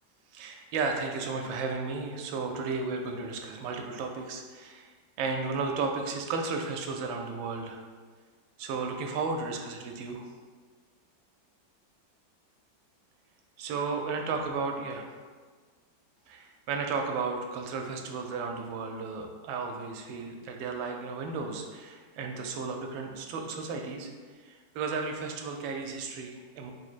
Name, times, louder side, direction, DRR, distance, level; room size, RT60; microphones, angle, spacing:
voice 1, 0.3-4.9 5.2-7.8 8.6-10.3 13.6-15.1 16.3-24.1 24.4-26.7, right 4 dB, 85° right, 3 dB, 1.3 m, -34 dB
5.2 x 3.0 x 2.4 m, 1.5 s
omnidirectional pair, 2.1 m